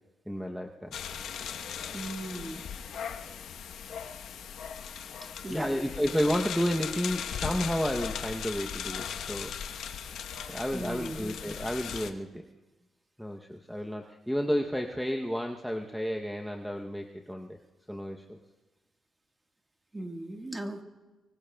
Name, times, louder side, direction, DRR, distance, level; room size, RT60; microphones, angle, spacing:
voice 1, 0.3-1.0 5.5-9.6 9.8-10.2 10.5-12.5 13.2-17.6 17.9-18.4, equal, ahead, 1 dB, 0.8 m, -32 dB
sound 1, 0.9-12.1, left 8 dB, 80° left, 1.0 m, -38 dB
voice 2, 1.9-2.6 5.4-5.7 10.7-11.2 19.9-20.8, right 1 dB, 20° right, 4 dB, 1.5 m, -37 dB
25.5 x 24.0 x 2.3 m, 1.2 s
cardioid pair, 120°, 0 cm